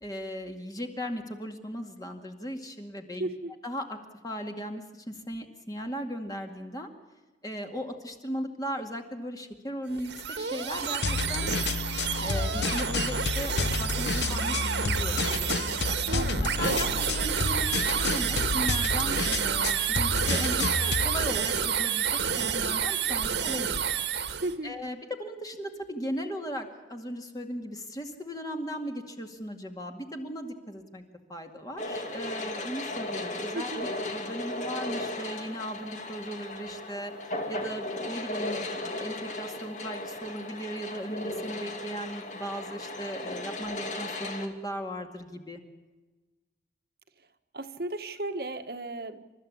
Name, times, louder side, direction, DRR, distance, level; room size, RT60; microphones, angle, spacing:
voice 1, 0.0-3.3 3.6-4.0 4.2-6.9 7.4-11.5 12.2-16.0 16.4-17.7 17.9-23.8 24.6-31.0 31.3-37.1 37.5-45.6, equal, 20° left, 4 dB, 2.1 m, -37 dB
voice 2, 3.2-3.5 16.1-16.8 24.3-24.7 33.5-33.8 47.5-49.2, right 2 dB, 55° right, 8 dB, 1.5 m, -35 dB
sound 1, 9.9-24.5, right 7 dB, 80° right, 1.8 m, -29 dB
sound 2, 11.0-21.2, left 4 dB, 70° left, 0.8 m, -30 dB
sound 3, 31.8-44.5, left 1 dB, 40° left, 2.4 m, -36 dB
29.0 x 13.5 x 8.6 m, 1.2 s
head